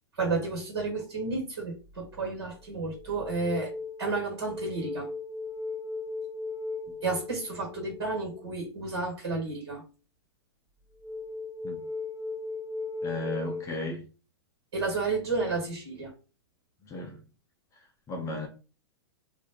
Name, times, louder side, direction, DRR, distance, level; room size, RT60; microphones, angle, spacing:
voice 1, 0.2-3.7 4.0-5.1 7.0-9.8 14.7-16.1, right 3 dB, 70° right, 1.2 m, -31 dB
sound 1, 1.8-2.1 2.6-8.5 11.0-13.6, left 3 dB, 20° right, 0.8 m, -37 dB
voice 2, 13.0-14.0 16.9-17.2 18.1-18.5, left 2 dB, 20° left, 0.6 m, -34 dB
2.4 x 2.0 x 2.8 m
hypercardioid pair, 110°, 14 cm